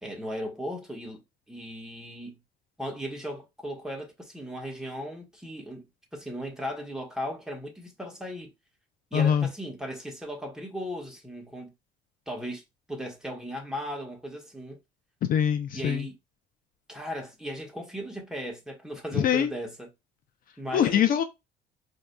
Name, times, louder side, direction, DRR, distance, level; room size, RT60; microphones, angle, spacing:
voice 1, 0.0-1.2 1.5-2.4 2.8-8.5 9.1-11.7 12.3-12.6 12.9-14.8 15.7-16.2 16.9-19.9 20.6-21.2, equal, 5° right, 1.4 m, -37 dB
voice 2, 9.1-9.5 15.3-16.0 19.1-19.5 20.7-21.2, left 9 dB, 55° left, 0.5 m, -23 dB
4.6 x 2.8 x 2.2 m
cardioid pair, 110°, 17 cm